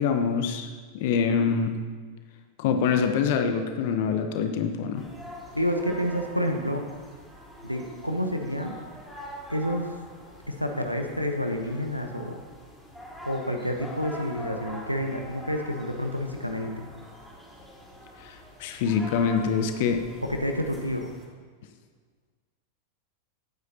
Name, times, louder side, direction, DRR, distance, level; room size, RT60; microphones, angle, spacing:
voice 1, 0.0-1.7 2.6-5.0 18.2-20.0, left 6 dB, 50° left, 7 dB, 0.9 m, -25 dB
sound 1, 4.9-21.3, left 1 dB, ahead, 3.7 m, -44 dB
voice 2, 5.5-6.8 7.6-8.8 9.5-10.0 10.5-12.4 13.2-16.9 20.3-21.1, equal, 90° left, 4 dB, 1.0 m, -29 dB
17.5 x 9.5 x 2.8 m, 1.5 s
figure-of-eight pair, 90°, 0 cm